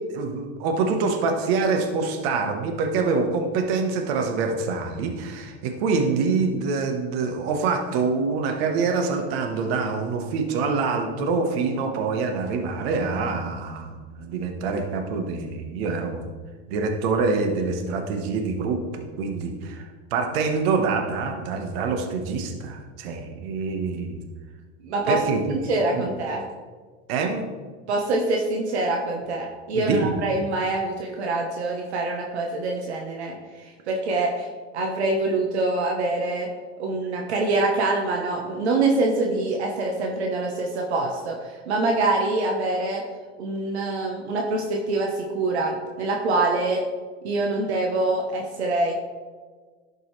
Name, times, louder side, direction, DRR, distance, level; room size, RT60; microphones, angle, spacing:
voice 1, 0.1-16.3 16.7-24.2 25.1-25.6 25.9-26.1 27.1-27.5 29.7-30.2, right 4 dB, 65° right, 4 dB, 1.4 m, -25 dB
voice 2, 24.8-25.2 25.6-26.4 27.9-34.5 34.7-36.5 36.8-43.0 43.4-46.8 47.2-48.9, right 2 dB, 85° right, 1 dB, 1.1 m, -25 dB
11.5 x 5.4 x 3.3 m, 1.5 s
hypercardioid pair, 95°, 32 cm